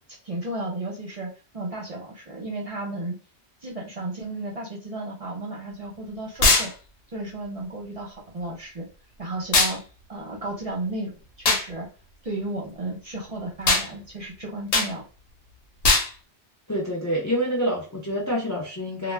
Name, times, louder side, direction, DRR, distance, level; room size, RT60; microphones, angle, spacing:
voice 1, 0.2-1.3 1.5-3.2 3.6-6.7 7.1-8.9 9.2-9.8 10.1-11.9 12.2-15.0, right 2 dB, 40° right, -1 dB, 0.6 m, -33 dB
sound 1, 6.4-6.7 9.5-9.8 11.4-11.6 13.7-13.9 14.7-14.9 15.8-16.1, left 3 dB, 80° left, 1.0 m, -19 dB
voice 2, 16.7-19.1, equal, 30° left, -2 dB, 0.3 m, -27 dB
2.1 x 2.1 x 3.3 m, 0.35 s
omnidirectional pair, 1.1 m